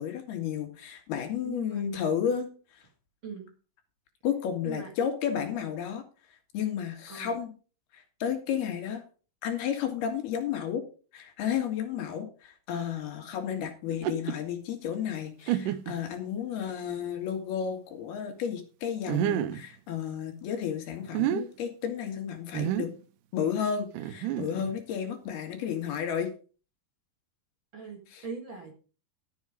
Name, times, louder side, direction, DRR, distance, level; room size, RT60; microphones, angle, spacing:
voice 1, 0.0-2.8 4.2-6.0 6.5-7.5 7.9-9.0 9.4-10.8 11.1-22.9 23.3-26.3 28.1-28.3, left 8 dB, 80° left, 4 dB, 3.9 m, -32 dB
voice 2, 1.4-1.8 3.2-3.5 4.6-4.9 7.1-7.4 27.7-28.7, right 5 dB, 45° right, 1 dB, 1.8 m, -40 dB
sound 1, 13.9-14.4 14.9-15.0 15.5-16.0 16.7-16.8 19.1-19.6 21.0-21.4 22.5-23.0 23.9-24.8, right 12 dB, 80° right, 1.9 m, -29 dB
12.5 x 7.3 x 5.0 m, 0.37 s
omnidirectional pair, 4.4 m